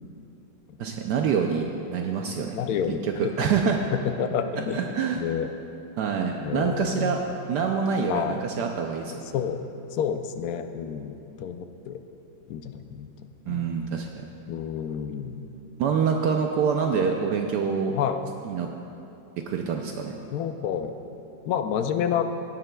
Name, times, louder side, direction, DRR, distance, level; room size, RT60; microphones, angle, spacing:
voice 1, 0.8-2.6 2.9-3.8 4.7-5.2 6.0-9.1 13.5-14.2 15.8-17.9 18.4-18.7 19.4-20.2, right 6 dB, 70° right, 3 dB, 1.1 m, -26 dB
voice 2, 2.5-3.1 3.4-3.5 3.9-5.5 6.4-7.3 8.1-8.4 9.3-9.6 9.9-12.0 12.5-13.1 13.5-13.7 14.5-15.4 17.9-18.2 20.3-20.9 21.5-22.3, left 8 dB, 70° left, 7 dB, 0.9 m, -29 dB
17.0 x 9.7 x 2.2 m, 2.9 s
omnidirectional pair, 2.0 m